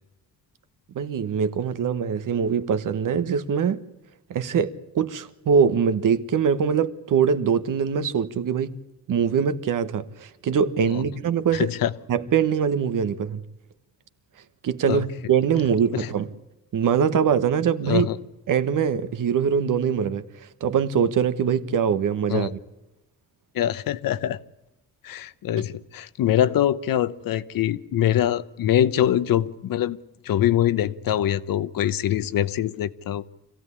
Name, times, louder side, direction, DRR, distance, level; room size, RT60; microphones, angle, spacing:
voice 1, 0.9-3.8 4.3-8.7 9.1-11.7 12.1-13.4 14.6-16.3 16.7-18.1 18.5-20.2 20.6-22.6, right 7 dB, 70° right, 1.4 m, -23 dB
voice 2, 11.5-11.9 14.9-15.0 15.9-16.1 17.9-18.2 22.3-22.5 23.5-24.4 25.0-30.0 30.2-33.3, left 11 dB, 85° left, 1.0 m, -23 dB
25.5 x 16.5 x 9.8 m
wide cardioid pair, 145°, 33 cm